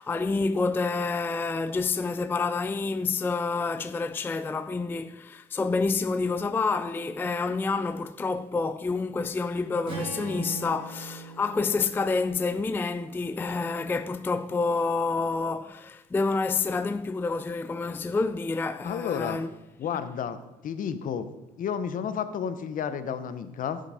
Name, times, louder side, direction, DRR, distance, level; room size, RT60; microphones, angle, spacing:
voice 1, 0.0-19.5, left 4 dB, 10° left, 0.3 m, -28 dB
Strum, 9.9-14.1, right 3 dB, 30° right, 3.9 m, -41 dB
voice 2, 18.8-19.4 19.8-20.4 20.6-21.3 21.6-23.8, left 7 dB, 55° left, 0.9 m, -31 dB
12.5 x 6.5 x 4.9 m
cardioid pair, 110°, 17 cm